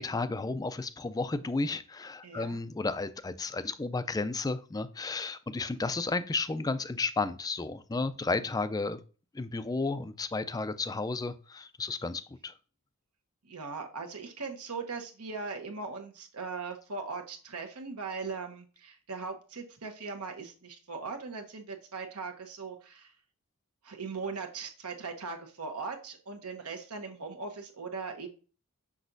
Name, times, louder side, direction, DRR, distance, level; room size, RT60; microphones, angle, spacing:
voice 1, 0.0-9.0 9.3-12.5, left 3 dB, 15° left, 0.3 m, -33 dB
voice 2, 2.2-2.6 13.4-23.1 23.8-28.3, right 4 dB, 80° right, 1.1 m, -39 dB
6.1 x 5.9 x 2.6 m
head